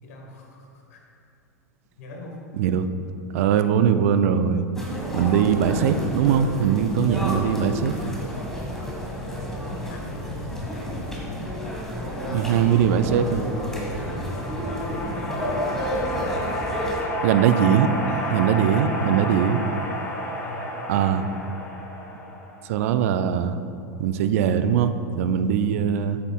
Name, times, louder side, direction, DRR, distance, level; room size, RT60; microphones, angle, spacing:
voice 1, 0.0-1.0 2.0-2.4 9.3-11.8 12.2-15.6 16.1-16.4 18.1-19.6 20.4-21.2 25.2-25.6, left 2 dB, 60° left, 0 dB, 1.5 m, -40 dB
voice 2, 2.6-2.9 3.3-4.7 5.1-7.9 12.3-13.5 17.2-17.9 18.3-19.6 20.9-21.3 22.6-23.6 24.0-26.2, right 8 dB, 55° right, 10 dB, 0.4 m, -21 dB
sound 1, 4.7-17.0, equal, 5° left, 1.6 m, -31 dB
sound 2, 5.9-12.7, equal, 80° left, 1.3 m, -47 dB
sound 3, 13.4-22.8, equal, 25° left, 1.2 m, -31 dB
8.2 x 8.0 x 2.3 m, 2.5 s
figure-of-eight pair, 90°, 9 cm